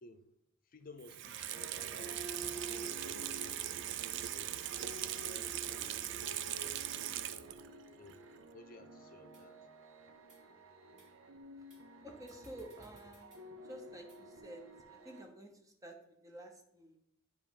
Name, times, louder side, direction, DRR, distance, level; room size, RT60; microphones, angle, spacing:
voice 1, 0.6-3.7 4.3-7.2 8.0-8.2 8.5-9.6, left 3 dB, 45° left, 0.6 m, -56 dB
Water tap faucet / Sink (filling or washing), 1.0-7.7 8.1-8.2, right 12 dB, 60° right, 0.4 m, -40 dB
sound 1, 1.5-15.2, equal, 85° right, 0.7 m, -52 dB
sound 2, 9.3-9.4 10.2-10.4 11.0-11.1 11.7-11.8 12.3-13.4 14.1-14.2, right 2 dB, 40° right, 3.1 m, -65 dB
voice 2, 12.0-13.4 13.6-17.0, right 1 dB, 15° right, 0.9 m, -51 dB
9.1 x 3.1 x 5.2 m
head